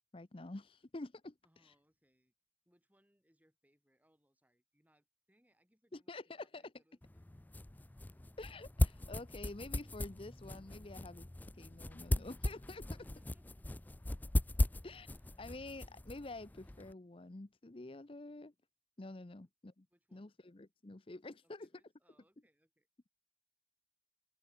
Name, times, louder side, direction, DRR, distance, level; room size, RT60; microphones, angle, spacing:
voice 1, 0.1-1.7 5.9-6.6 8.4-11.3 11.5-13.0 14.8-15.1 15.4-18.5 19.0-19.7 20.1-21.7, left 2 dB, 30° left, 0.7 m, -48 dB
voice 2, 1.4-2.3 2.6-8.2 13.0-13.7 15.0-15.4 19.4-19.5 19.9-20.4 21.4-22.9, equal, 10° right, 6.7 m, -75 dB
sound 1, 7.0-16.9, left 1 dB, 10° left, 0.3 m, -38 dB
open air
head